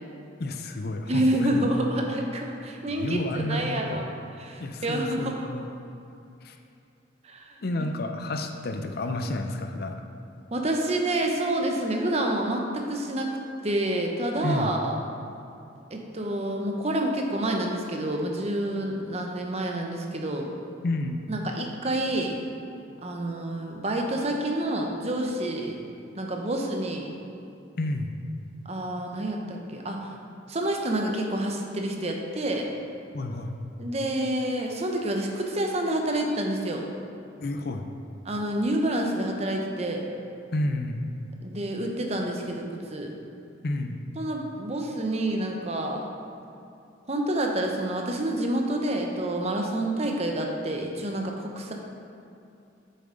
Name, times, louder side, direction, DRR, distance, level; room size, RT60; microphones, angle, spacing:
voice 1, 0.4-1.7 2.9-4.0 4.6-5.7 6.4-6.6 7.6-10.0 14.4-14.7 20.8-21.2 27.8-28.1 33.1-33.5 37.4-37.9 40.5-41.0 43.6-44.0, left 2 dB, 50° left, 5 dB, 0.5 m, -30 dB
voice 2, 1.1-4.0 4.4-5.5 7.2-7.5 10.5-13.3 13.6-15.0 15.9-20.5 21.3-22.4 23.0-25.8 26.2-27.1 28.6-30.0 30.5-32.7 33.8-36.8 38.2-40.0 41.4-43.1 44.2-46.0 47.1-51.7, right 1 dB, 35° right, 1 dB, 0.9 m, -28 dB
8.6 x 6.9 x 3.8 m, 2.6 s
head